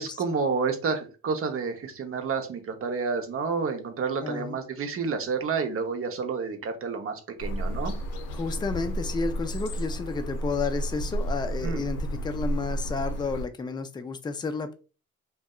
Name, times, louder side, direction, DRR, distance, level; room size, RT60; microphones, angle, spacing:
voice 1, 0.0-7.9 11.6-11.8, right 5 dB, 45° right, 5 dB, 0.7 m, -30 dB
voice 2, 4.2-4.6 8.3-14.7, left 4 dB, 15° left, 7 dB, 0.4 m, -31 dB
sound 1, 7.4-13.4, right 1 dB, 90° left, 0.5 m, -32 dB
2.6 x 2.2 x 2.2 m, 0.34 s
supercardioid pair, 55°, 33 cm